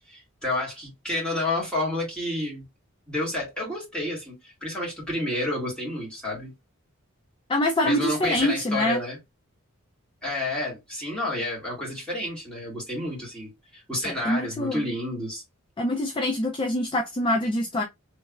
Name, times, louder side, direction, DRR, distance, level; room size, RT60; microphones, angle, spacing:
voice 1, 0.1-2.7 3.1-6.5 7.8-9.2 10.2-15.4, left 1 dB, 5° left, 1.9 m, -30 dB
voice 2, 7.5-9.0 14.0-14.8 15.8-17.8, left 1 dB, 25° left, 0.4 m, -25 dB
3.2 x 3.2 x 2.4 m
head